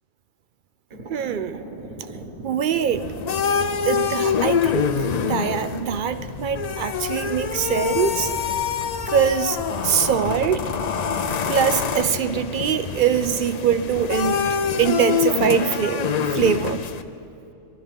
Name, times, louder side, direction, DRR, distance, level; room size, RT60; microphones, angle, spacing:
sound 1, 0.9-15.0, right 2 dB, 40° right, 1.7 m, -39 dB
voice 1, 1.1-1.6 2.4-3.1 3.9-4.9 5.3-8.3 9.1-10.6 11.5-14.4 14.8-16.8, right 8 dB, 60° right, 12 dB, 0.5 m, -23 dB
sound 2, 2.9-17.0, left 7 dB, 55° left, 0.4 m, -25 dB
20.5 x 12.0 x 5.3 m, 2.6 s
omnidirectional pair, 1.3 m